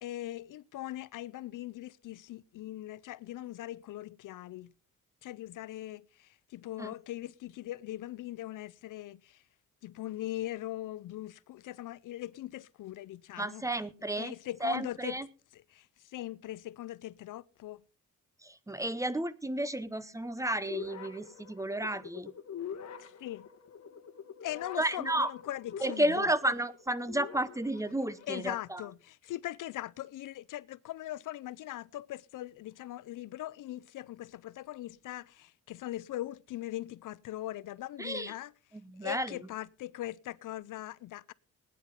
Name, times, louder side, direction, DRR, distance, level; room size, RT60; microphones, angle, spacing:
voice 1, 0.0-4.7 5.2-9.4 9.8-13.7 14.1-15.2 15.5-17.8 23.0-23.5 24.4-26.3 28.3-38.5 39.0-41.3, left 14 dB, 70° left, 0.5 m, -40 dB
voice 2, 13.4-14.3 14.6-15.3 18.4-22.3 24.8-25.3 25.8-28.8 38.0-38.3 38.7-39.4, right 1 dB, 10° right, 0.7 m, -32 dB
sound 1, 20.6-28.6, left 7 dB, 55° left, 1.7 m, -46 dB
18.5 x 9.8 x 3.9 m
cardioid pair, 110°, 33 cm